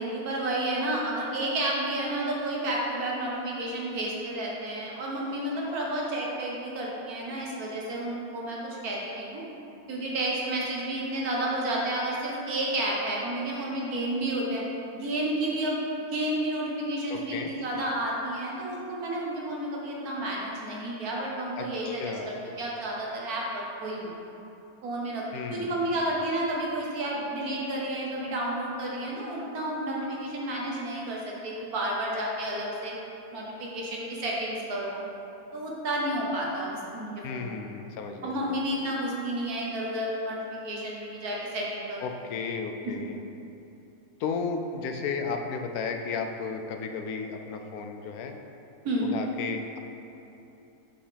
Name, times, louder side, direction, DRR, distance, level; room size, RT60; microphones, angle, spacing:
voice 1, 0.0-9.4 9.9-14.6 14.9-15.8 16.1-24.1 24.8-32.9 33.3-34.9 35.5-37.5 38.2-42.0 42.8-43.1 48.8-49.3, right 1 dB, 80° right, -3 dB, 1.6 m, -31 dB
voice 2, 17.1-17.5 21.6-22.4 25.3-26.0 37.2-38.6 42.0-43.2 44.2-48.3 49.1-49.8, left 5 dB, 85° left, 4 dB, 1.1 m, -34 dB
8.0 x 5.4 x 3.3 m, 2.9 s
omnidirectional pair, 1.6 m